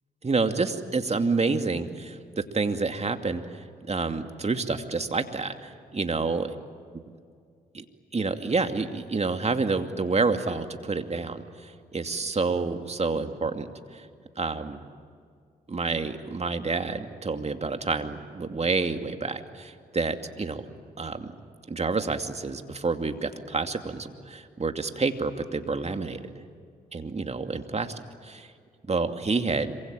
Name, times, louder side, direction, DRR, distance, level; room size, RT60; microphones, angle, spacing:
voice 1, 0.2-6.5 7.7-7.8 8.1-14.1 14.4-14.8 15.7-20.7 21.0-21.3 21.7-26.2 26.9-28.5 28.9-29.8, right 4 dB, 35° right, 7 dB, 2.6 m, -28 dB
26.5 x 24.5 x 9.0 m, 2.1 s
hypercardioid pair, 45°, 19 cm